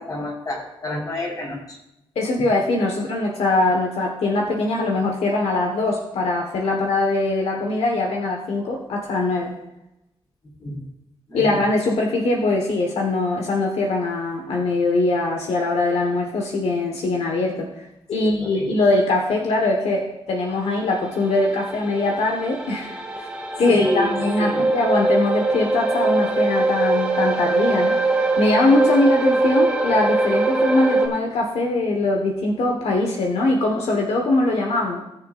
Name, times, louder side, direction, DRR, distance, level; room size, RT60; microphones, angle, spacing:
voice 1, 0.0-1.8 10.6-10.9 11.3-11.5 18.1-18.7 23.7-24.6, left 1 dB, 40° left, -4 dB, 4.3 m, -28 dB
voice 2, 2.1-9.5 11.3-23.3 23.6-35.0, left 2 dB, 85° left, 0 dB, 1.3 m, -22 dB
sound 1, 20.7-31.1, right 2 dB, 10° right, 1.7 m, -22 dB
19.0 x 6.7 x 2.5 m, 0.87 s
cardioid pair, 90°, 10 cm